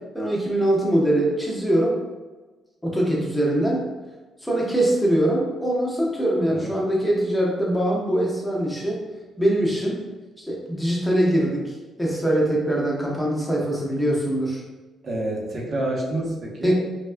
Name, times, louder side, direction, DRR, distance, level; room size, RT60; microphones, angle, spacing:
voice 1, 0.1-1.9 2.8-3.9 4.4-9.0 9.4-10.0 10.4-14.6 16.6-16.7, right 1 dB, 5° left, -4 dB, 0.9 m, -22 dB
voice 2, 15.0-16.7, right 1 dB, 55° right, -3 dB, 0.8 m, -28 dB
3.4 x 2.3 x 2.2 m, 1.2 s
cardioid pair, 90°, 0 cm